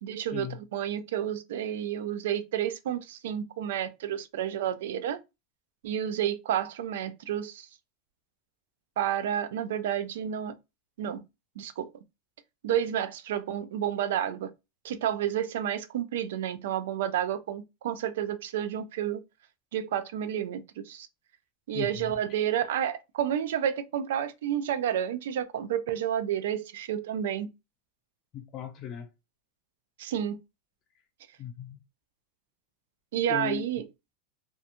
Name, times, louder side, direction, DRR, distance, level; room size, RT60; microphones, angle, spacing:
voice 1, 0.0-5.2 5.8-7.7 9.0-10.5 11.0-11.2 11.6-11.9 12.6-14.5 14.8-19.2 19.7-20.6 20.9-21.1 21.7-27.5 30.0-30.4 33.1-33.8, right 10 dB, 85° right, 0.4 m, -30 dB
voice 2, 21.7-22.1 28.3-29.1 31.4-31.8 33.3-33.7, left 10 dB, 30° left, 0.4 m, -37 dB
2.8 x 2.2 x 2.5 m
supercardioid pair, 165°, 0 cm